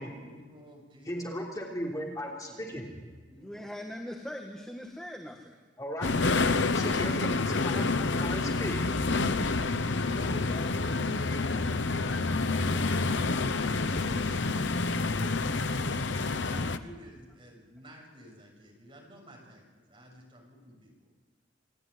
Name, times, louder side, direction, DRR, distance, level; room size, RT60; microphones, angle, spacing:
voice 1, 0.2-1.4 2.5-2.8 3.3-3.7 6.0-6.1 16.1-20.9, equal, 30° right, -1 dB, 7.2 m, -52 dB
voice 2, 1.1-2.9 5.8-6.1 6.7-7.9 8.2-8.8, equal, 20° left, -2 dB, 3.4 m, -36 dB
voice 3, 3.4-5.5, left 1 dB, 5° left, 1 dB, 1.9 m, -41 dB
sound 1, 6.0-16.8, left 3 dB, 75° left, 1.0 m, -28 dB
voice 4, 9.9-15.4, left 2 dB, 50° left, -1 dB, 4.0 m, -49 dB
28.5 x 13.5 x 9.8 m, 1.4 s
head